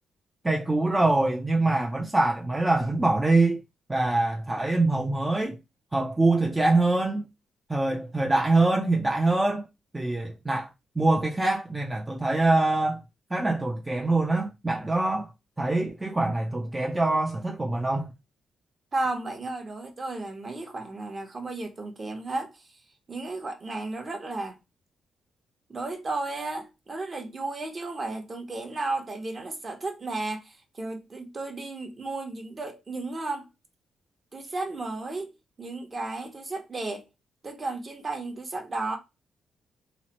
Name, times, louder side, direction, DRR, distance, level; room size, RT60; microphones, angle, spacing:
voice 1, 0.4-3.6 3.9-5.6 5.9-7.3 7.7-9.7 9.9-10.7 11.0-13.0 13.3-15.3 15.6-18.1, right 2 dB, 15° right, 0.4 m, -24 dB
voice 2, 18.9-22.6 23.1-24.6 25.7-33.5 34.3-35.3 35.6-37.0 37.4-39.0, right 2 dB, 35° right, 0.8 m, -33 dB
3.0 x 2.1 x 2.8 m
cardioid pair, 95°, 0 cm